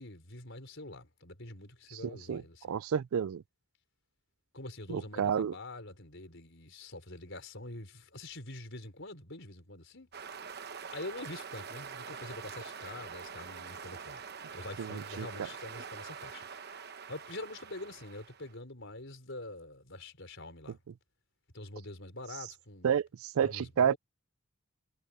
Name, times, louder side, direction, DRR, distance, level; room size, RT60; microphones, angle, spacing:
voice 1, 0.0-2.8 4.5-10.1 10.9-14.2 14.5-20.8 21.5-23.0 23.4-24.0, left 2 dB, 55° left, 5.4 m, -45 dB
voice 2, 2.0-2.4 2.7-3.4 4.9-5.5 14.8-15.3 22.8-23.9, right 8 dB, 75° right, 0.4 m, -30 dB
sound 1, 10.1-18.5, right 6 dB, 50° right, 1.0 m, -45 dB
head